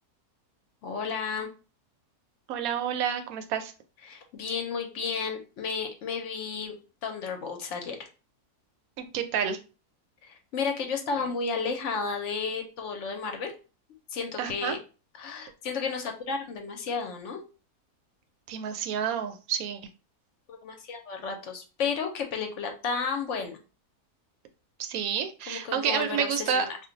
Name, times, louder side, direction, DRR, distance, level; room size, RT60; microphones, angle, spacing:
voice 1, 0.8-1.5 4.0-6.7 7.0-8.0 10.2-13.5 14.1-14.8 15.2-17.4 20.5-23.6 25.5-26.8, left 5 dB, 65° left, 4 dB, 0.8 m, -32 dB
voice 2, 2.5-3.7 9.0-9.6 14.4-14.8 18.5-19.8 24.8-26.7, right 8 dB, 75° right, 7 dB, 1.0 m, -29 dB
2.5 x 2.2 x 3.7 m, 0.33 s
omnidirectional pair, 1.6 m